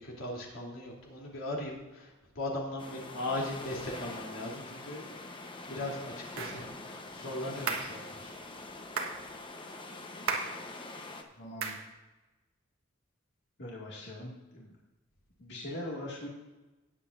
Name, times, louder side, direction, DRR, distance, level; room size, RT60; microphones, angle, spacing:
voice 1, 0.0-5.3 5.7-8.3, left 1 dB, 80° left, -3 dB, 3.2 m, -38 dB
sound 1, 2.8-11.2, left 2 dB, 25° left, 1.0 m, -45 dB
sound 2, 6.4-6.6 7.7-8.0 9.0-9.2 10.3-10.6 11.6-11.9, right 4 dB, 90° right, 1.5 m, -34 dB
voice 2, 11.4-11.8 13.6-14.8 15.4-16.3, left 1 dB, 60° left, -5 dB, 2.3 m, -41 dB
19.0 x 7.9 x 2.6 m, 1.1 s
head